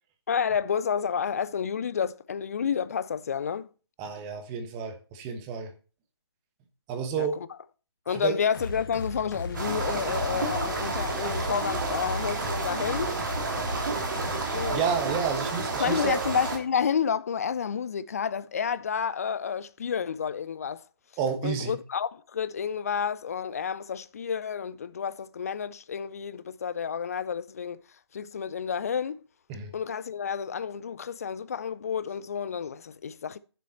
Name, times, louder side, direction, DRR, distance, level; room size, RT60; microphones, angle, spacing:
voice 1, 0.3-3.7 7.2-7.5 8.1-13.1 14.5-14.8 15.8-20.8 21.4-27.8 28.1-29.2 29.7-33.4, left 7 dB, 35° left, 0.6 m, -30 dB
voice 2, 4.0-5.7 6.9-7.4 8.1-8.4 14.4-16.2 21.2-21.8 29.5-29.7, right 6 dB, 15° right, 1.1 m, -30 dB
sound 1, 8.5-14.7, left 3 dB, 50° left, 1.9 m, -37 dB
sound 2, 9.5-16.6, right 3 dB, 50° right, 3.1 m, -30 dB
10.0 x 7.3 x 4.2 m
figure-of-eight pair, 145°, 14 cm